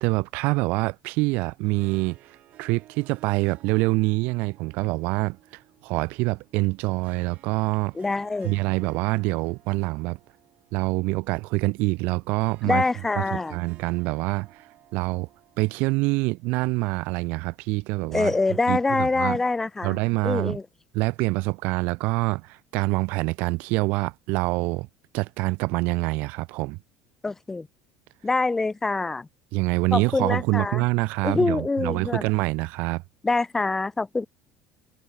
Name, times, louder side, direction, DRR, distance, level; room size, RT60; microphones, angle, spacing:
voice 1, 0.0-2.2 2.6-5.4 5.8-8.0 8.4-10.2 10.7-12.8 13.2-14.5 14.9-15.3 15.6-18.3 18.7-19.4 19.8-20.6 20.9-24.9 25.1-26.8 29.5-33.0, right 24 dB, 75° right, 0.4 m, -25 dB
Harp, 1.4-16.6, right 14 dB, 55° right, 1.4 m, -55 dB
voice 2, 7.9-8.5 12.6-13.6 18.1-20.6 27.2-27.7 28.2-29.3 29.9-30.8 31.2-32.2 33.2-34.3, left 3 dB, 15° left, 0.4 m, -25 dB
supercardioid pair, 110°, 3 cm